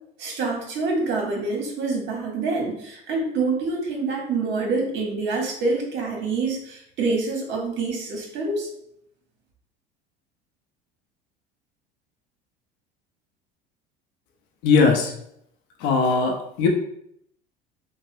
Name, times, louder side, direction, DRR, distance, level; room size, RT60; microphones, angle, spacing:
voice 1, 0.2-8.7, right 3 dB, 60° right, 0 dB, 1.1 m, -26 dB
voice 2, 14.6-15.1 15.8-16.7, left 4 dB, 65° left, 2 dB, 0.6 m, -19 dB
3.4 x 2.0 x 2.5 m, 0.73 s
supercardioid pair, 95°, 21 cm